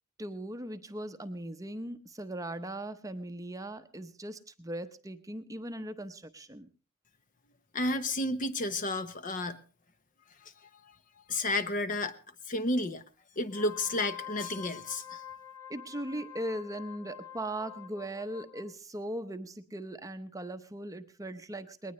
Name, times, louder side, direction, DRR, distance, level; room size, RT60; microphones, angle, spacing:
voice 1, 0.2-6.7 15.7-21.9, right 1 dB, 15° right, 0.8 m, -39 dB
voice 2, 7.7-9.6 10.4-10.5 11.3-12.2 12.5-13.0 13.4-15.2, left 2 dB, 40° left, 1.0 m, -31 dB
Wind instrument woodwind instrument, 13.4-18.7, left 10 dB, 15° left, 1.2 m, -46 dB
20.5 x 19.0 x 3.2 m
head